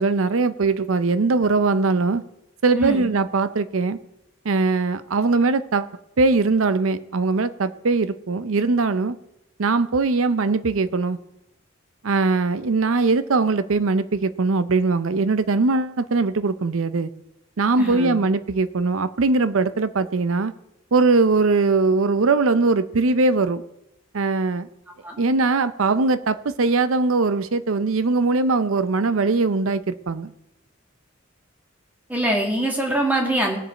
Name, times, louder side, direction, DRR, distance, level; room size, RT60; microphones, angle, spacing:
voice 1, 0.0-2.2 2.6-4.0 4.4-5.9 6.2-9.2 9.6-11.2 12.0-17.1 17.6-20.5 20.9-23.6 24.1-24.7 25.2-30.3, right 3 dB, 80° right, 14 dB, 0.6 m, -21 dB
voice 2, 17.8-18.2 25.0-25.2 32.1-33.6, right 1 dB, 10° right, 0 dB, 2.0 m, -23 dB
19.5 x 7.0 x 4.4 m, 0.87 s
head